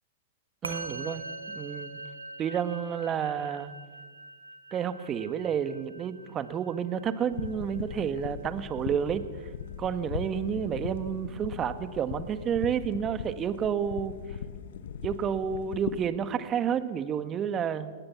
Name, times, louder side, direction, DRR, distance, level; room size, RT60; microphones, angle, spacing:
voice 1, 0.6-2.0 2.4-3.7 4.7-9.2 9.8-14.1 15.0-17.9, right 8 dB, 25° right, 11 dB, 1.7 m, -30 dB
Musical instrument, 0.6-10.2, right 2 dB, 85° right, 2.4 m, -44 dB
sound 1, 7.3-16.0, left 7 dB, 65° left, 1.5 m, -39 dB
29.5 x 18.0 x 7.3 m, 1.5 s
figure-of-eight pair, 105°, 0 cm